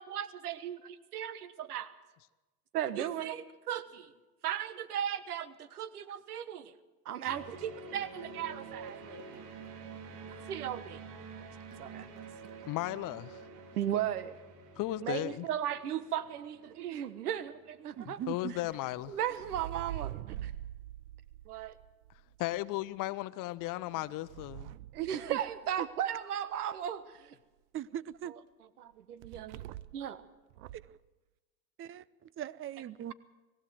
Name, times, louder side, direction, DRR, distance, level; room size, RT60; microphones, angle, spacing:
voice 1, 0.0-1.9 2.7-4.1 4.4-6.7 7.0-9.2 10.5-11.0 11.8-12.1 13.8-14.4 15.0-18.2 19.1-20.1 20.4-20.5 21.4-21.8 24.9-27.4 28.8-30.2, right 10 dB, 90° right, 1.3 m, -36 dB
sound 1, 7.2-18.6, right 4 dB, 55° right, 2.7 m, -49 dB
voice 2, 12.7-13.4 14.8-15.4 18.1-19.2 22.4-24.7, left 16 dB, 45° left, 0.9 m, -35 dB
voice 3, 18.0-18.5 25.3-25.4 25.8-25.9 27.7-28.4 30.7-31.0 31.8-33.1, right 11 dB, 30° right, 0.7 m, -40 dB
sound 2, 18.5-22.6 23.6-25.9 29.2-30.1 30.5-31.0, right 13 dB, 70° right, 0.7 m, -45 dB
22.0 x 15.5 x 7.8 m
hypercardioid pair, 100°, 44 cm